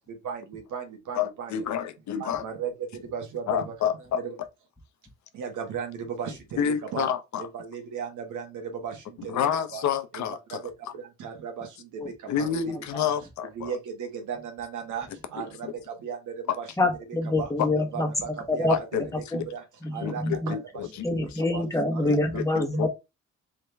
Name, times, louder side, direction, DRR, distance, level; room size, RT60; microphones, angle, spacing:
voice 1, 0.2-1.5 2.2-2.7 3.1-3.7 5.3-6.4 6.9-7.1 7.5-9.3 9.7-9.8 10.5-10.7 11.2-11.7 12.4-12.6 13.0-13.1 13.6-15.1 15.3-15.7 16.0-16.6 17.4-17.5 17.9-19.2 19.5-19.6 19.9-20.6 21.5-21.6 21.9-22.1 22.5-22.6, right 7 dB, 80° right, 1.5 m, -35 dB
voice 2, 1.1-2.4 3.5-4.2 6.6-7.5 9.2-10.9 12.3-13.8 15.4-15.7 16.5-16.6 17.6-17.7 18.7-19.5 20.0-21.6 22.0-22.9, left 8 dB, 70° left, 0.8 m, -29 dB
voice 3, 16.8-18.1 18.5-18.7 19.3-19.4 19.8-20.5 21.0-22.9, left 2 dB, 10° left, 1.2 m, -26 dB
3.7 x 3.1 x 3.4 m
cardioid pair, 90°, 30 cm